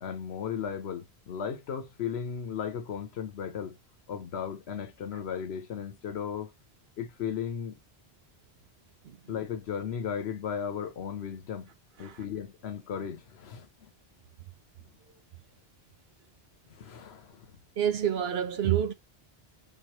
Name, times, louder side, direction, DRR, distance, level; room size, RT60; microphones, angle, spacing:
voice 1, 0.0-3.8 4.1-6.5 7.0-7.8 9.3-11.7 12.0-13.9 16.7-17.5, left 7 dB, 80° left, 1.1 m, -36 dB
voice 2, 17.8-18.9, right 10 dB, 75° right, 1.0 m, -28 dB
5.4 x 3.1 x 3.0 m
omnidirectional pair, 1.1 m